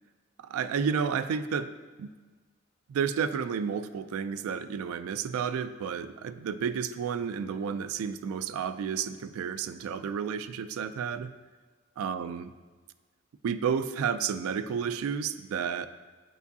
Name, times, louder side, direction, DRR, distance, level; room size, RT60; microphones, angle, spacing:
voice 1, 0.4-1.7 2.0-2.1 2.9-11.3 12.0-12.4 13.4-15.9, right 7 dB, 90° right, 12 dB, 0.3 m, -31 dB
8.0 x 4.7 x 2.7 m, 1.4 s
head